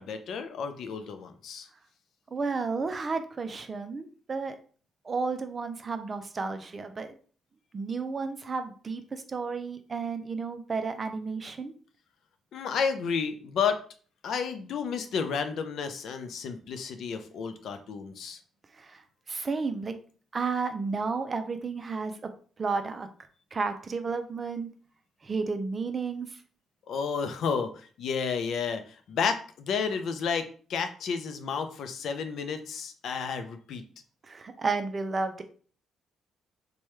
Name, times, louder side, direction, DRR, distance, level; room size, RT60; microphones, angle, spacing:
voice 1, 0.0-1.7 12.5-13.8 14.2-18.4 26.9-28.8 29.1-33.8, left 6 dB, 70° left, 8 dB, 0.4 m, -31 dB
voice 2, 2.3-4.6 5.0-7.2 7.7-11.7 18.7-19.0 19.3-20.0 20.3-22.3 22.6-23.1 23.5-24.7 25.2-26.4 34.2-35.4, right 4 dB, 35° right, 8 dB, 0.4 m, -32 dB
3.0 x 2.2 x 3.1 m, 0.42 s
cardioid pair, 90°, 0 cm